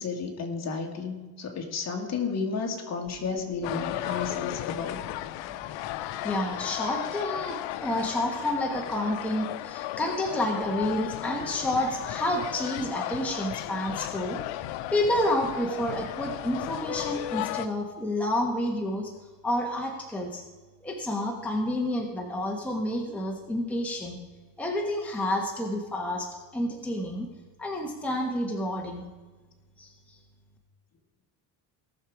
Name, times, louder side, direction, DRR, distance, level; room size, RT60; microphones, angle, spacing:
voice 1, 0.0-5.0, left 5 dB, 40° left, 2 dB, 2.1 m, -32 dB
sound 1, 3.6-17.7, left 14 dB, 90° left, 0.7 m, -35 dB
voice 2, 6.2-14.4 14.9-19.1 19.4-20.4 20.8-24.2 24.6-27.3 27.6-29.1 29.8-30.2, left 1 dB, 5° left, 0 dB, 1.2 m, -29 dB
18.0 x 6.8 x 4.8 m, 1.3 s
cardioid pair, 140°, 43 cm